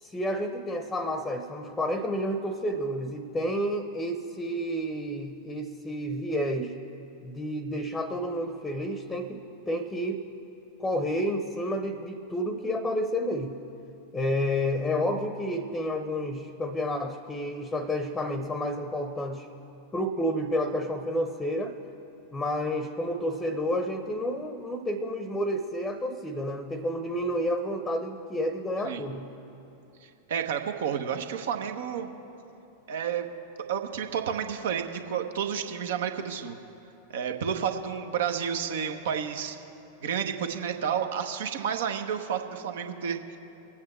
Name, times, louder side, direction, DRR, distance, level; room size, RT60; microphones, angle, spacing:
voice 1, 0.0-6.7 7.2-10.2 10.8-13.6 14.1-19.5 19.9-21.8 22.3-29.3, equal, 10° left, 9 dB, 0.8 m, -30 dB
voice 2, 30.0-32.1 32.9-33.3 33.7-36.6 37.1-39.6 40.0-43.4, right 8 dB, 60° right, 6 dB, 1.0 m, -31 dB
23.5 x 8.6 x 3.3 m, 2.9 s
figure-of-eight pair, 90°, 0 cm